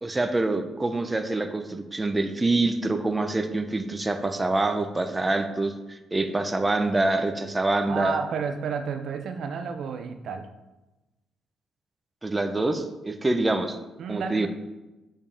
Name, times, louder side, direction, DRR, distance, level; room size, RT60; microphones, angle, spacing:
voice 1, 0.0-8.2 12.2-13.8 14.1-14.5, right 2 dB, 15° right, 7 dB, 0.8 m, -26 dB
voice 2, 7.8-10.5 14.0-14.5, right 6 dB, 65° right, 6 dB, 0.7 m, -31 dB
7.1 x 5.3 x 5.6 m, 1.0 s
cardioid pair, 90°, 0 cm